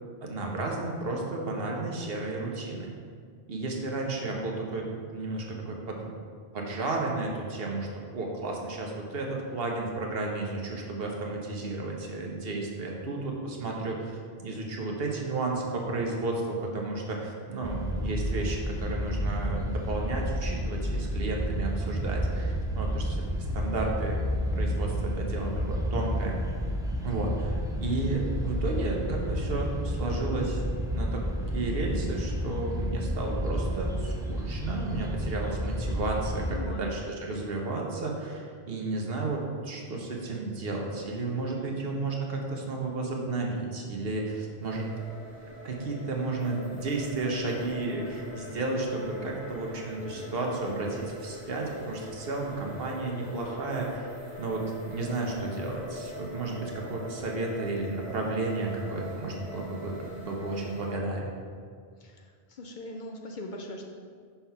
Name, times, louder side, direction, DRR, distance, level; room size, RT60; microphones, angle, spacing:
voice 1, 0.2-2.9 3.5-6.1 6.5-24.2 24.5-26.4 27.0-30.6 30.9-31.2 31.5-44.9 45.6-61.3, right 2 dB, 70° right, 0 dB, 1.1 m, -33 dB
sound 1, 17.6-36.6, equal, 5° right, 0.3 m, -31 dB
voice 2, 36.5-36.9 62.0-62.2 62.5-63.8, left 1 dB, 55° left, 2 dB, 0.6 m, -40 dB
sound 2, 44.6-61.0, left 1 dB, 15° left, 1.6 m, -43 dB
5.7 x 3.4 x 5.6 m, 2.1 s
omnidirectional pair, 1.1 m